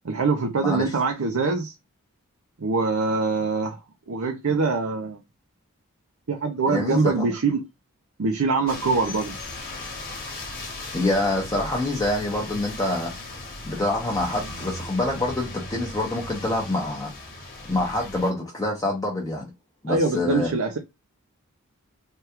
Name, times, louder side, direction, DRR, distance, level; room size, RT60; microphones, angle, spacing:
voice 1, 0.0-1.7 2.6-3.8 4.1-5.2 6.3-7.6 8.2-9.4 19.9-20.8, right 4 dB, 70° right, 0.5 m, -24 dB
voice 2, 0.6-0.9 6.7-7.3 10.9-13.1 13.6-17.1 17.6-19.5 19.8-20.5, left 2 dB, 15° left, 0.6 m, -26 dB
sound 1, 8.7-18.3, left 2 dB, 40° left, 1.1 m, -37 dB
3.4 x 2.2 x 2.8 m
head